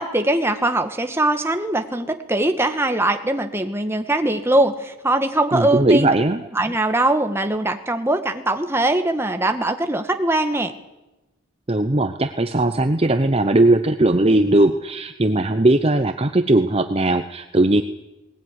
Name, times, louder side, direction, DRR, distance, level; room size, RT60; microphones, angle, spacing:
voice 1, 0.0-6.1 6.5-10.7, right 1 dB, 10° right, 6 dB, 1.6 m, -21 dB
voice 2, 5.5-6.4 11.7-17.8, right 2 dB, 25° right, 8 dB, 0.8 m, -18 dB
20.0 x 19.5 x 9.9 m, 0.99 s
head